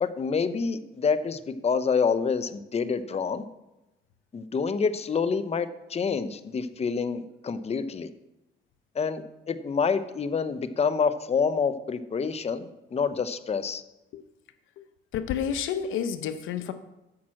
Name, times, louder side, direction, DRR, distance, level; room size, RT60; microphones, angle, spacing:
voice 1, 0.0-3.4 4.3-8.1 9.0-13.8, left 5 dB, 30° left, 12 dB, 0.7 m, -27 dB
voice 2, 15.1-16.7, left 8 dB, 90° left, 10 dB, 0.8 m, -29 dB
8.7 x 5.9 x 7.6 m, 0.96 s
cardioid pair, 90°, 20 cm